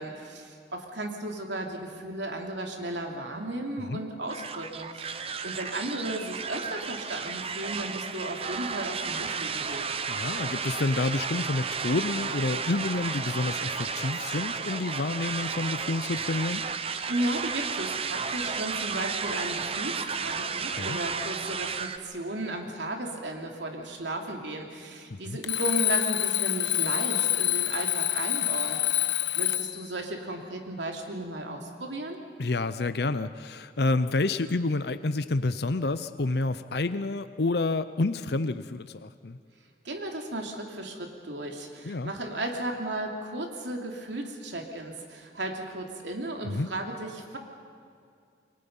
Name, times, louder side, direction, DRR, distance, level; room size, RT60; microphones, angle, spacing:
voice 1, 0.0-9.8 17.1-29.0 29.3-32.2 39.8-47.4, right 1 dB, 80° right, 2 dB, 3.0 m, -35 dB
sound 1, 4.3-22.0, right 5 dB, 30° right, 0.9 m, -33 dB
voice 2, 10.1-16.6 20.7-21.0 25.1-25.4 32.4-39.4 41.8-42.1 46.4-46.7, left 2 dB, 60° left, 12 dB, 0.7 m, -29 dB
Alarm, 25.4-29.9, left 14 dB, 80° left, 1.0 m, -27 dB
28.5 x 23.5 x 5.5 m, 2.3 s
head